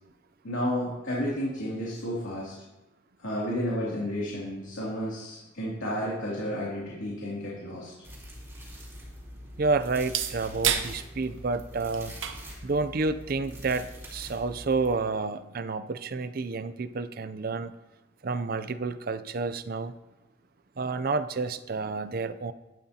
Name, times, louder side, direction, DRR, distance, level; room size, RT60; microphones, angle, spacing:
voice 1, 0.4-2.5 3.2-7.9, equal, 85° left, -6 dB, 2.8 m, -31 dB
sound 1, 7.6-15.6, right 9 dB, 80° right, 0.9 m, -37 dB
sound 2, 8.0-14.9, equal, 15° right, 3.6 m, -44 dB
voice 2, 9.6-12.2 12.6-17.7 18.2-20.0 20.8-22.5, right 3 dB, 50° right, 12 dB, 0.5 m, -30 dB
12.5 x 12.0 x 2.9 m, 1.1 s
head